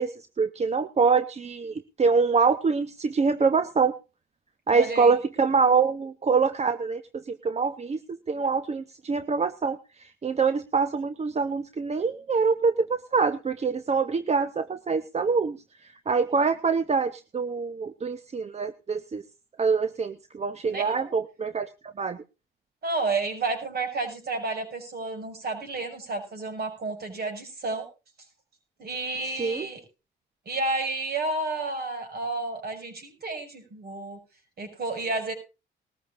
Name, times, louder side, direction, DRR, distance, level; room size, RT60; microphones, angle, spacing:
voice 1, 0.0-3.9 4.7-15.6 15.8-19.2 19.6-22.2 29.4-29.7, right 5 dB, 35° right, 12 dB, 0.9 m, -25 dB
voice 2, 4.7-5.1 20.6-21.1 22.8-27.9 28.8-29.8 30.5-34.2 34.6-35.3, right 3 dB, 55° right, 5 dB, 6.3 m, -31 dB
20.0 x 14.0 x 2.5 m, 0.30 s
cardioid pair, 90°, 20 cm